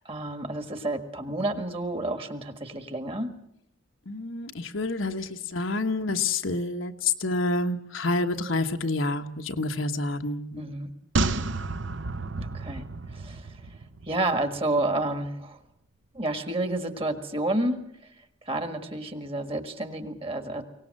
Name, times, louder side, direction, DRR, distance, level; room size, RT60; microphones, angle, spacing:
voice 1, 0.0-3.3 10.6-10.9 12.4-13.8 14.0-15.6 16.1-17.8 18.0-18.1 18.4-20.6, right 2 dB, 25° right, 9 dB, 1.6 m, -30 dB
voice 2, 4.1-10.6, left 3 dB, 70° left, 6 dB, 1.2 m, -28 dB
sound 1, 11.2-14.6 14.9-15.0, right 3 dB, 60° right, 0.9 m, -31 dB
23.0 x 18.5 x 7.7 m, 0.78 s
head